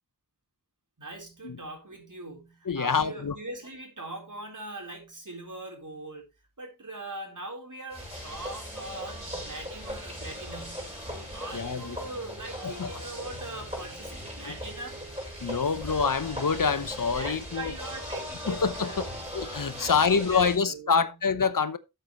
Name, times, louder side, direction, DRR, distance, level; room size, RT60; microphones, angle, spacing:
voice 1, 1.0-6.3 6.6-11.0 11.3-15.0 17.1-19.2 19.8-21.1, right 2 dB, 50° right, 3.9 m, -41 dB
voice 2, 2.6-3.3 11.5-12.0 12.6-12.9 14.5-14.6 15.4-17.7 18.5-21.8, left 5 dB, 55° left, 0.8 m, -26 dB
sound 1, 7.9-20.6, equal, 15° right, 6.3 m, -38 dB
12.5 x 7.7 x 3.1 m
wide cardioid pair, 75°, 38 cm